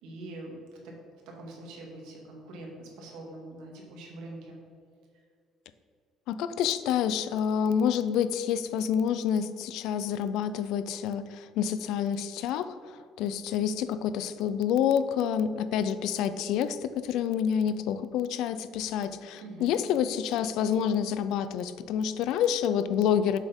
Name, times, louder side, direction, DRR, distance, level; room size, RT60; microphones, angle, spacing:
voice 1, 0.0-0.6 0.8-0.9 1.3-4.6 19.4-19.8, right 2 dB, 85° right, -1 dB, 2.2 m, -43 dB
voice 2, 6.3-23.4, left 8 dB, 70° left, 13 dB, 0.4 m, -28 dB
7.3 x 6.2 x 5.2 m, 2.2 s
cardioid pair, 165°, 0 cm